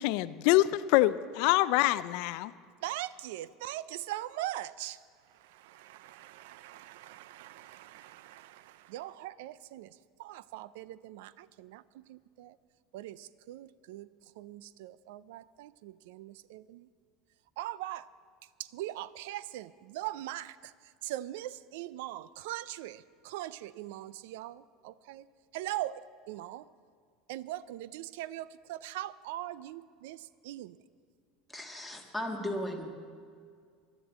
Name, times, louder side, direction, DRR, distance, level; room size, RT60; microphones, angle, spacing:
voice 1, 0.0-2.5, left 16 dB, 65° left, 16 dB, 0.3 m, -25 dB
voice 2, 2.8-5.0 5.3-12.6 12.9-14.1 14.4-16.9 17.6-18.1 18.6-25.3 25.5-26.7 27.3-30.8, right 14 dB, 80° right, 19 dB, 0.4 m, -41 dB
voice 3, 31.5-32.9, left 1 dB, ahead, 3 dB, 1.6 m, -36 dB
11.5 x 11.0 x 8.0 m, 2.1 s
supercardioid pair, 145°, 0 cm